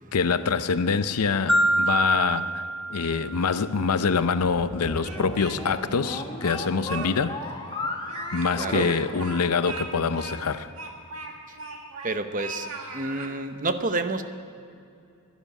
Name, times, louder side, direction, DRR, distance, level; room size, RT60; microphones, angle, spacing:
voice 1, 0.1-2.6 2.9-7.4 8.3-10.7, left 5 dB, 85° left, 12 dB, 0.6 m, -25 dB
Marimba xylophone, 1.5-3.7, right 1 dB, ahead, 0.6 m, -25 dB
sound 1, 4.4-9.9, left 2 dB, 20° left, 1.3 m, -36 dB
Speech, 4.8-5.7 6.0-7.1 7.4-7.5 8.0-12.1 12.4-13.3, right 3 dB, 70° right, 1.9 m, -38 dB
voice 2, 8.6-8.9 11.5-11.6 12.0-14.2, right 2 dB, 35° right, 9 dB, 0.8 m, -29 dB
12.0 x 11.5 x 9.7 m, 2.5 s
head